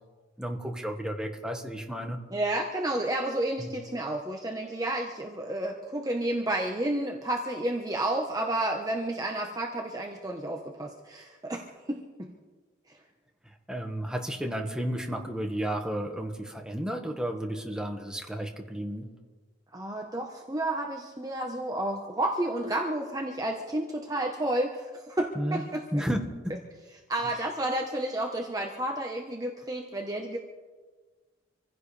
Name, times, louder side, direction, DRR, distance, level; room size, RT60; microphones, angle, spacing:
voice 1, 0.4-2.2 3.6-3.7 13.4-19.1 25.3-25.6 25.9-26.5, equal, 5° right, 3 dB, 1.5 m, -32 dB
voice 2, 2.3-12.3 19.7-26.0 27.1-30.4, right 1 dB, 20° right, 1 dB, 1.1 m, -31 dB
26.5 x 16.0 x 3.4 m, 1.4 s
head